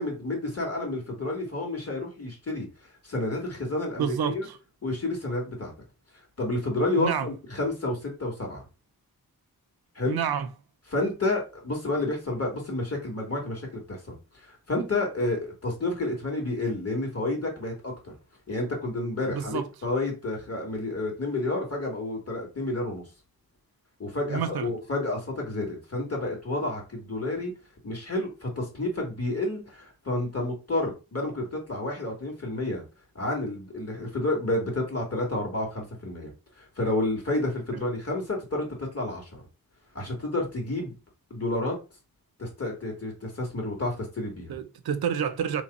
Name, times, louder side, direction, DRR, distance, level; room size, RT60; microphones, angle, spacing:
voice 1, 0.0-2.7 3.0-4.5 4.8-5.7 6.4-8.6 10.0-10.2 10.9-14.0 14.3-18.1 18.5-23.0 24.0-27.5 27.8-32.8 33.2-36.3 36.6-39.3 39.9-40.9 41.3-41.8 42.4-44.6, left 2 dB, 40° left, 1.8 m, -30 dB
voice 2, 4.0-4.6 7.0-7.3 10.1-10.5 19.3-19.7 24.3-24.7 37.7-37.9 44.5-45.6, right 7 dB, 90° right, 0.6 m, -29 dB
3.1 x 2.2 x 4.0 m
cardioid pair, 65°, 37 cm